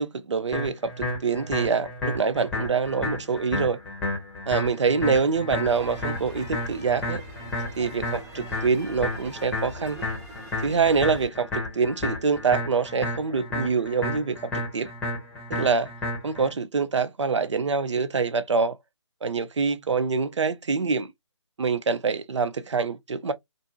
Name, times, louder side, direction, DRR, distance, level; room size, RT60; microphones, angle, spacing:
voice 1, 0.0-3.8 4.5-7.2 7.8-10.0 10.6-14.9 15.5-15.9 16.2-18.7 19.2-21.1 21.6-23.3, right 5 dB, 70° right, 0.5 m, -25 dB
sound 1, 0.5-16.5, left 2 dB, 5° left, 0.8 m, -32 dB
sound 2, 5.6-11.3, right 1 dB, 20° right, 1.0 m, -42 dB
2.6 x 2.5 x 2.3 m
figure-of-eight pair, 150°, 16 cm